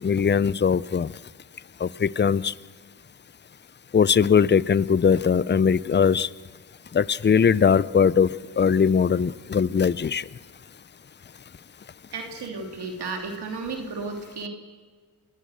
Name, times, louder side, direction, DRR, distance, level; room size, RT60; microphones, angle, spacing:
voice 1, 0.0-1.1 1.8-2.5 3.9-6.3 6.9-10.2, left 6 dB, 25° left, 19 dB, 0.6 m, -20 dB
voice 2, 12.1-14.5, right 4 dB, 80° right, 3 dB, 3.1 m, -33 dB
27.5 x 19.0 x 6.5 m, 1.5 s
cardioid pair, 55°, 39 cm